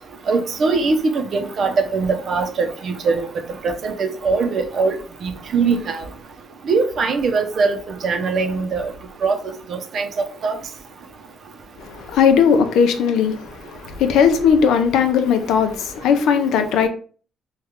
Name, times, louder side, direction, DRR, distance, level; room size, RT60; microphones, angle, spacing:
voice 1, 0.3-3.3 3.6-4.9 5.2-6.0 6.7-7.8 8.0-8.9 9.2-9.3 9.7-10.1 10.4-10.6, right 4 dB, 60° right, 0.6 m, -21 dB
voice 2, 11.8-16.9, left 7 dB, 85° left, 0.5 m, -18 dB
3.1 x 2.3 x 3.6 m
cardioid pair, 90°, 0 cm